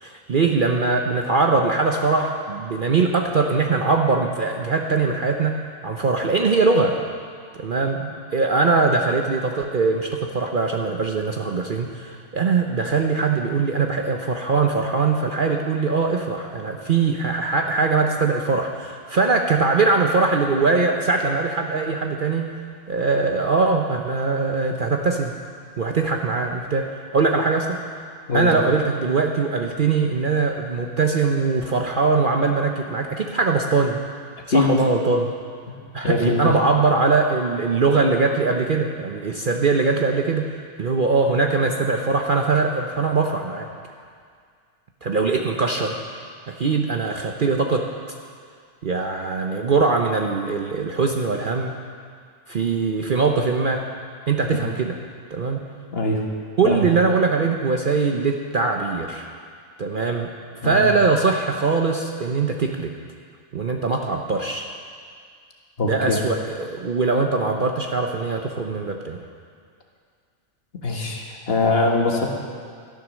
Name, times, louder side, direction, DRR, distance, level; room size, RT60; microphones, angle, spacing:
voice 1, 0.0-6.9 7.5-22.5 22.9-25.3 25.8-26.9 27.1-27.8 28.3-34.0 34.5-35.3 35.9-40.5 40.8-43.7 45.0-46.0 46.5-47.8 48.8-51.7 52.5-53.8 54.3-55.0 55.3-55.6 56.6-59.3 59.8-60.3 60.6-62.9 63.5-64.7 65.8-69.2, right 4 dB, 45° right, 2 dB, 0.8 m, -21 dB
voice 2, 36.0-36.5 55.9-56.2 56.6-56.8 60.6-60.8 65.8-66.2 70.8-72.3, left 3 dB, 50° left, 0 dB, 1.7 m, -22 dB
13.0 x 10.5 x 6.3 m, 2.1 s
omnidirectional pair, 1.4 m